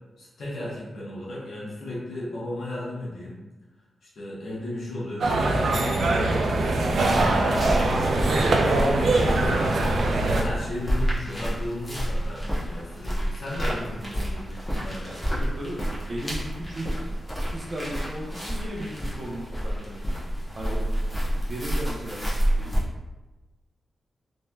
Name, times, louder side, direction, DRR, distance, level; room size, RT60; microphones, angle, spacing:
voice 1, 0.2-3.4 4.0-9.9 10.3-15.1, left 1 dB, 75° left, -5 dB, 1.0 m, -35 dB
sound 1, 5.2-10.4, right 2 dB, 75° right, 0.4 m, -22 dB
sound 2, 6.9-22.8, equal, 10° left, 0.9 m, -29 dB
voice 2, 15.0-17.0 17.5-19.9 20.5-21.0 21.3-22.7, right 1 dB, 45° right, -2 dB, 0.7 m, -36 dB
3.1 x 2.8 x 2.3 m, 1.1 s
cardioid pair, 95°, 0 cm